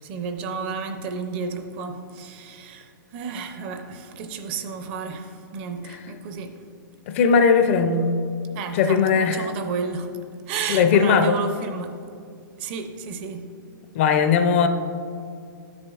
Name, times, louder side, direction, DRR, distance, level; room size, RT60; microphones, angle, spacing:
voice 1, 0.0-6.6 8.5-10.1 10.5-12.0 12.6-13.5, right 5 dB, 30° right, 0.5 m, -32 dB
voice 2, 7.1-8.2 8.7-9.5 10.7-11.4 13.9-14.7, left 6 dB, 35° left, 0.4 m, -18 dB
10.5 x 6.9 x 2.4 m
hypercardioid pair, 150°, 11 cm